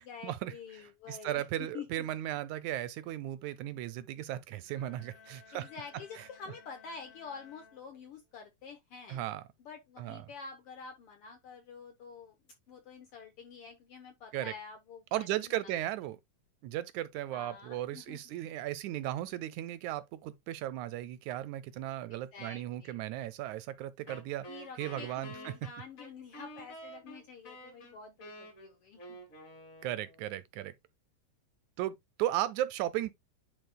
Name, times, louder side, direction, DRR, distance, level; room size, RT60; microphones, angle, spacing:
voice 1, 0.0-2.1 5.5-9.2 9.6-12.4 12.7-15.7 17.3-18.3 22.1-23.0 24.5-29.2, left 5 dB, 70° left, 1.4 m, -48 dB
voice 2, 0.8-5.7 6.2-6.3 9.1-9.4 10.0-10.3 14.3-14.5 15.1-16.2 16.6-24.5 24.8-25.5 29.8-30.7 31.8-33.1, right 13 dB, 80° right, 1.8 m, -36 dB
sound 1, 4.6-8.4, left 6 dB, 50° left, 2.5 m, -58 dB
Wind instrument woodwind instrument, 24.1-30.4, equal, 25° left, 3.6 m, -49 dB
10.5 x 4.1 x 2.2 m
omnidirectional pair, 3.6 m